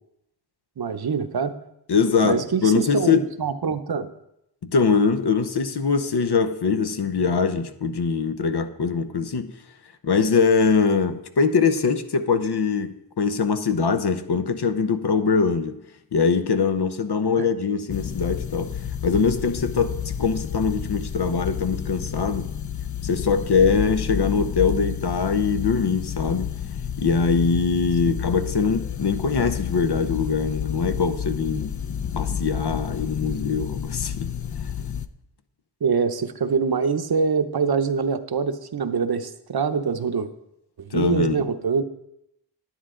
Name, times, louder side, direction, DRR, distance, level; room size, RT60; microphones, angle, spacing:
voice 1, 0.8-1.5 2.2-4.1 17.4-17.5 35.8-40.3 40.8-41.8, right 5 dB, 60° right, 0.8 m, -24 dB
voice 2, 1.9-3.2 4.6-9.5 10.0-15.7 16.1-18.7 19.0-22.5 23.0-26.5 27.0-31.7 32.1-34.3 40.9-41.5, left 5 dB, 65° left, 0.9 m, -22 dB
sound 1, 17.9-35.1, left 8 dB, 45° left, 0.5 m, -30 dB
10.0 x 9.8 x 3.8 m
wide cardioid pair, 70°, 43 cm